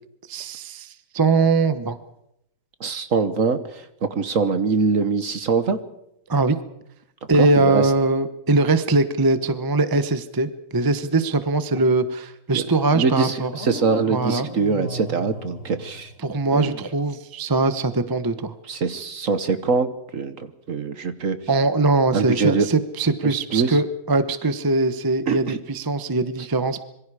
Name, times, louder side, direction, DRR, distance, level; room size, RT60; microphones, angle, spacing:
voice 1, 0.3-2.0 6.3-6.6 7.3-13.5 14.1-14.5 16.2-18.5 21.5-26.8, right 3 dB, 15° right, 11 dB, 0.8 m, -21 dB
voice 2, 2.8-3.8 4.1-5.8 7.4-7.9 12.5-16.1 16.5-16.8 18.7-21.4 22.1-22.7 23.2-23.8 25.3-25.6, right 4 dB, 50° right, 11 dB, 1.5 m, -23 dB
sound 1, 13.4-16.6, left 1 dB, 90° left, 4.3 m, -36 dB
26.0 x 23.0 x 5.0 m, 0.79 s
omnidirectional pair, 1.9 m